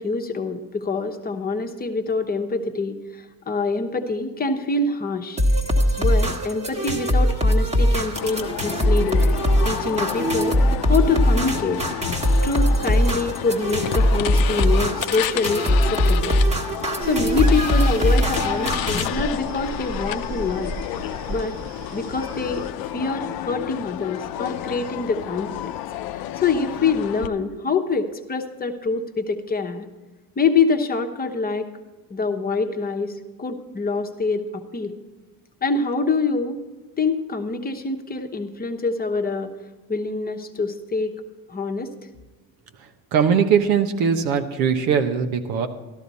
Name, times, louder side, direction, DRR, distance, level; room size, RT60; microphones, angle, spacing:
voice 1, 0.0-5.4 6.0-9.2 9.6-10.6 10.9-11.8 12.4-16.3 17.0-20.8 21.3-21.6 21.9-22.7 22.9-25.7 26.4-29.9 30.4-31.7 32.1-35.0 35.6-36.6 37.0-39.5 39.9-41.1 41.5-41.9, left 4 dB, 25° left, 5 dB, 1.1 m, -25 dB
sound 1, 5.4-19.1, equal, 20° right, 1.3 m, -21 dB
sound 2, 8.2-27.3, left 12 dB, 75° left, 0.6 m, -31 dB
sound 3, 17.0-22.7, right 1 dB, 50° right, 1.6 m, -35 dB
voice 2, 42.8-45.7, right 7 dB, 80° right, 7 dB, 1.1 m, -21 dB
13.5 x 11.5 x 4.2 m, 1.2 s
cardioid pair, 105°, 36 cm